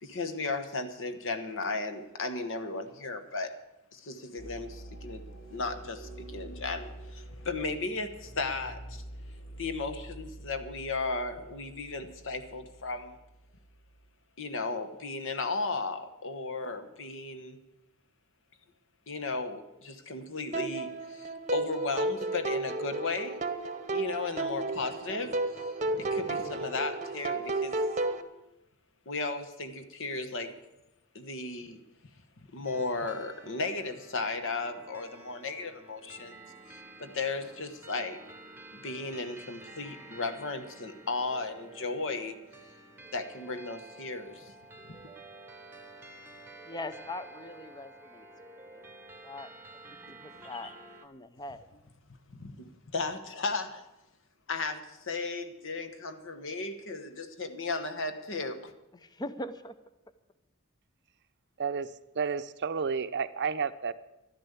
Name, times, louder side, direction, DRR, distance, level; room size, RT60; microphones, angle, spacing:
voice 1, 0.0-3.5 3.9-5.2 5.5-9.0 9.6-13.2 14.4-17.6 19.1-23.4 23.9-27.8 29.1-30.5 31.1-31.8 32.4-38.2 38.7-42.4 43.1-44.5 44.9-45.0 52.3-53.8 54.5-58.7, left 3 dB, 60° left, 9 dB, 1.3 m, -35 dB
sound 1, 4.4-14.1, right 1 dB, 85° left, 2.7 m, -47 dB
sound 2, 20.5-28.2, right 2 dB, 35° right, 0.9 m, -32 dB
sound 3, 32.7-51.1, right 2 dB, 10° right, 1.1 m, -50 dB
voice 2, 46.6-48.3 48.7-48.9 49.2-49.5 49.8-50.7 51.0-51.7 58.9-59.7, left 2 dB, 20° left, 11 dB, 0.6 m, -41 dB
voice 3, 61.6-63.9, right 5 dB, 50° right, 12 dB, 0.6 m, -31 dB
12.5 x 10.5 x 8.2 m, 0.93 s
head